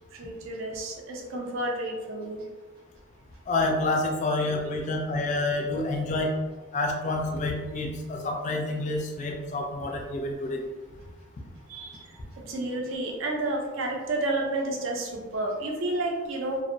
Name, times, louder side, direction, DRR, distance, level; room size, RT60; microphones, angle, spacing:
voice 1, 0.2-2.4 11.7-12.0 12.5-16.6, right 2 dB, 70° right, 0 dB, 0.5 m, -30 dB
voice 2, 3.5-6.3 6.7-10.6, left 2 dB, 35° left, 1 dB, 0.3 m, -28 dB
2.5 x 2.0 x 2.6 m, 1.3 s
head